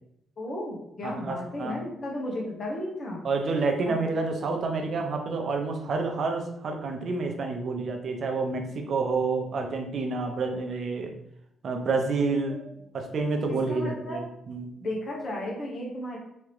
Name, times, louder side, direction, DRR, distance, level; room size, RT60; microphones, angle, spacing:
voice 1, 0.4-3.2 3.8-3.9 12.5-12.6 13.5-14.2 14.8-16.2, left 1 dB, 45° left, -2 dB, 1.4 m, -34 dB
voice 2, 1.0-1.8 3.2-11.1 11.6-12.6 12.9-14.7, right 3 dB, 55° right, 4 dB, 0.7 m, -29 dB
3.6 x 3.1 x 3.3 m, 0.80 s
cardioid pair, 90°, 0 cm